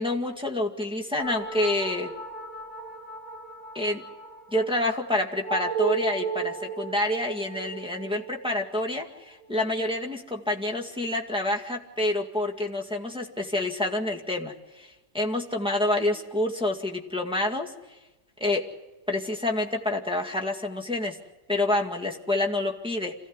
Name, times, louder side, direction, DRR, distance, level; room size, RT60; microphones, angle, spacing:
voice 1, 0.0-2.1 3.7-4.0 4.5-17.7 18.4-18.7 19.1-21.2 21.5-23.1, left 1 dB, 5° right, 0 dB, 2.0 m, -28 dB
sound 1, 1.2-10.0, right 5 dB, 60° right, 4.7 m, -35 dB
26.5 x 16.0 x 9.7 m, 1.1 s
omnidirectional pair, 1.7 m